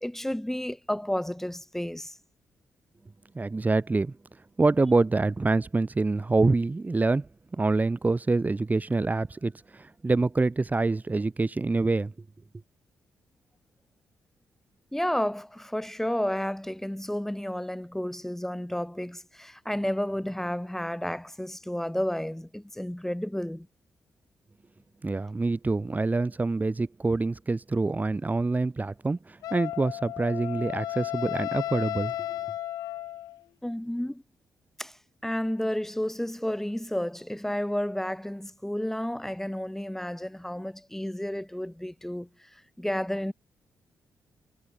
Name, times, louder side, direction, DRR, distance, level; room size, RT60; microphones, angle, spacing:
voice 1, 0.0-2.1 14.9-23.7 33.6-34.2 34.8-35.0 35.2-43.3, left 1 dB, 5° left, 3.4 m, -31 dB
voice 2, 3.3-4.2 4.6-12.1 25.0-32.1, right 3 dB, 25° right, 2.0 m, -26 dB
Wind instrument woodwind instrument, 29.4-33.4, left 13 dB, 85° left, 1.1 m, -34 dB
supercardioid pair, 60°, 6 cm